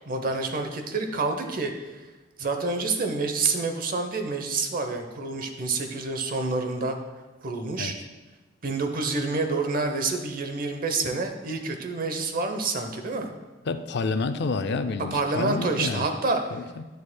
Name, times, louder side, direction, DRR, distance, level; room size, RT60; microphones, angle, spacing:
voice 1, 0.1-2.1 2.4-7.0 7.4-8.0 8.6-13.3 15.1-16.4, right 3 dB, 50° right, 6 dB, 0.7 m, -28 dB
voice 2, 13.7-16.1 16.5-16.8, left 4 dB, 65° left, 9 dB, 0.4 m, -29 dB
11.0 x 6.5 x 2.2 m, 1.2 s
head